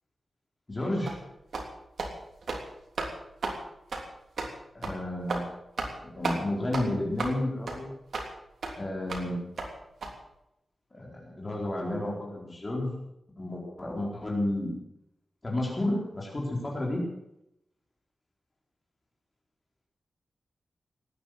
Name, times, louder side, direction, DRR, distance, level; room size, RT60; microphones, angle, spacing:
voice 1, 0.7-1.1 4.7-5.4 6.1-7.9 8.7-9.4 10.9-12.9 13.4-14.7 15.4-17.0, left 1 dB, 25° left, -3 dB, 4.3 m, -31 dB
sound 1, 1.1-1.2 1.5-1.7 2.0-2.1 2.4-2.6 3.0-3.1 3.4-3.6 3.9-4.0 4.4-4.5 4.8-5.0 5.3-5.4 5.8-6.0 6.2-6.4 6.7-6.8 7.2-7.3 7.7-7.8 8.1-8.3 8.6-8.7 9.1-9.2 9.6-9.7 10.0-10.1, right 3 dB, 80° right, 3.3 m, -33 dB
18.0 x 10.5 x 7.8 m, 0.84 s
wide cardioid pair, 175°, 0 cm